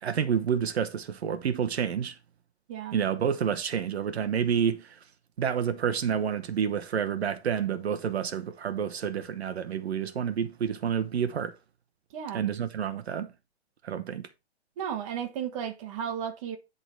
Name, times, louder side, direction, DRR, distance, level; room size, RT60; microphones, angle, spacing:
voice 1, 0.0-2.2 2.9-5.0 5.4-11.5 12.3-13.3 13.8-14.3, right 8 dB, 70° right, 1.1 m, -29 dB
voice 2, 12.1-12.5 14.8-16.6, right 8 dB, 30° right, 1.5 m, -34 dB
10.5 x 4.0 x 4.5 m
hypercardioid pair, 160°, 33 cm